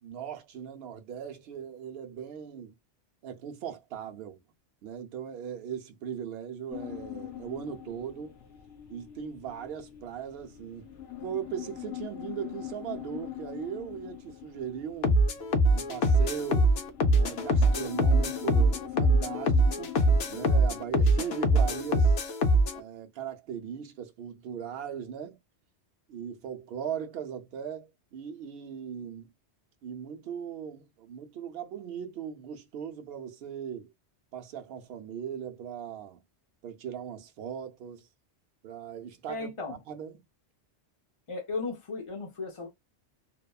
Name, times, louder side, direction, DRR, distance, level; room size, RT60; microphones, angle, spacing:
voice 1, 0.0-2.7 3.2-4.4 4.8-8.4 8.9-10.9 11.2-15.2 15.7-16.7 17.1-20.0 20.3-22.2 22.7-25.4 26.1-29.3 29.8-33.9 34.3-36.2 36.6-38.1 38.6-40.2, right 8 dB, 65° right, 0.7 m, -39 dB
sound 1, 6.7-22.2, left 12 dB, 85° left, 1.0 m, -43 dB
sound 2, 15.0-22.8, right 1 dB, 70° left, 0.8 m, -23 dB
voice 2, 39.3-39.8 41.3-42.7, left 3 dB, 35° left, 0.6 m, -35 dB
2.9 x 2.1 x 2.2 m
omnidirectional pair, 1.2 m